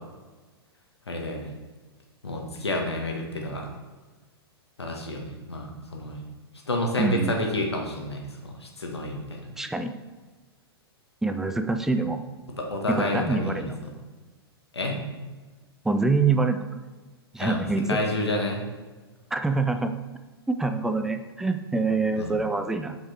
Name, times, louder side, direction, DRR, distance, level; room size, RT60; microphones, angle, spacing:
voice 1, 1.1-1.5 2.2-3.7 4.8-6.2 6.7-9.4 12.6-13.9 14.7-15.0 17.4-17.6 17.9-18.6 22.2-22.3, left 1 dB, 80° left, 1 dB, 1.7 m, -29 dB
voice 2, 7.0-7.3 9.6-9.9 11.2-12.2 12.9-13.8 15.8-16.8 17.3-18.0 19.3-20.0 20.5-23.0, right 3 dB, 5° right, 8 dB, 0.5 m, -25 dB
8.3 x 5.8 x 4.4 m, 1.3 s
figure-of-eight pair, 105°, 13 cm